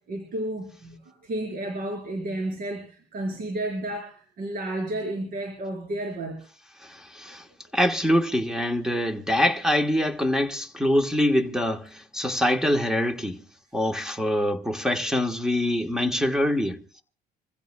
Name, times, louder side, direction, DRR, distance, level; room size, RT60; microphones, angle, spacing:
voice 1, 0.1-6.4, right 1 dB, 60° right, 4.3 m, -32 dB
voice 2, 6.8-7.4 7.7-13.4 13.7-16.8, left 1 dB, 5° right, 1.3 m, -24 dB
26.0 x 15.5 x 2.3 m
cardioid pair, 110°, 17 cm